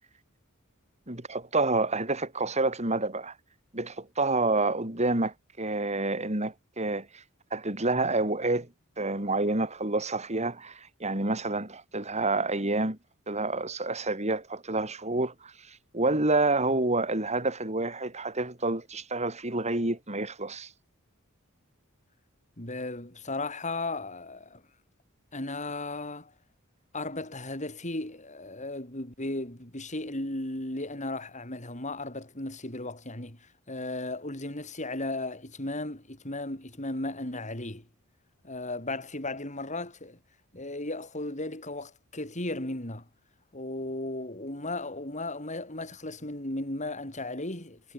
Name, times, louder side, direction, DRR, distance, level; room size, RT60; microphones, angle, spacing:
voice 1, 1.1-3.3 3.7-7.1 7.5-8.7 9.0-13.0 13.3-15.5 15.9-20.7, right 2 dB, 35° right, 4.5 m, -28 dB
voice 2, 22.6-24.6 25.3-26.3 26.9-37.9 38.4-40.2 40.5-43.1 43.5-47.9, left 2 dB, 35° left, 6.5 m, -35 dB
head